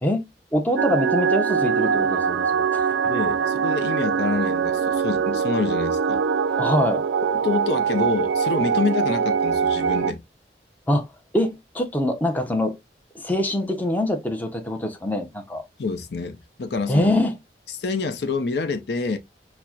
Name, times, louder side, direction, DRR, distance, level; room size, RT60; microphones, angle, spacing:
voice 1, 0.0-2.8 6.6-7.0 10.9-11.1 11.3-12.8 13.1-15.6 16.9-17.3, left 1 dB, 10° left, 0.5 m, -24 dB
sound 1, 0.8-10.1, right 6 dB, 85° right, 0.3 m, -23 dB
voice 2, 3.1-6.2 7.2-10.2 15.8-17.2 17.8-19.2, left 4 dB, 70° left, 0.5 m, -27 dB
5.7 x 2.1 x 2.3 m
head